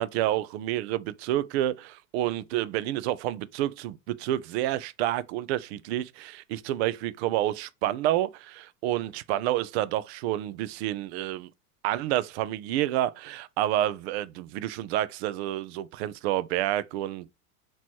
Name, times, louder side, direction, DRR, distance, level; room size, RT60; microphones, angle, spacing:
voice 1, 0.0-11.5 11.8-17.3, right 13 dB, 50° right, 0.5 m, -29 dB
3.0 x 3.0 x 4.3 m
hypercardioid pair, 90°, 42 cm